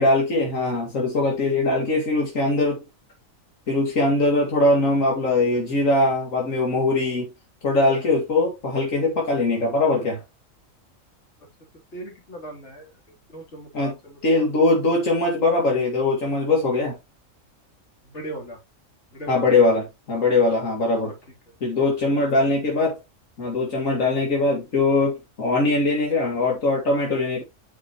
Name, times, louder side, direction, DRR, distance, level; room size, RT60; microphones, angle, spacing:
voice 1, 0.0-2.8 3.7-7.3 7.6-10.2 13.7-14.0 14.2-16.9 19.3-19.8 20.1-21.1 21.6-23.0 23.4-27.4, left 2 dB, 75° left, 2.4 m, -21 dB
voice 2, 11.9-12.9 13.3-14.5 18.0-18.6 19.1-19.4 21.0-21.1 21.8-21.9, right 1 dB, 60° left, 3.5 m, -38 dB
8.7 x 6.4 x 3.0 m
omnidirectional pair, 1.4 m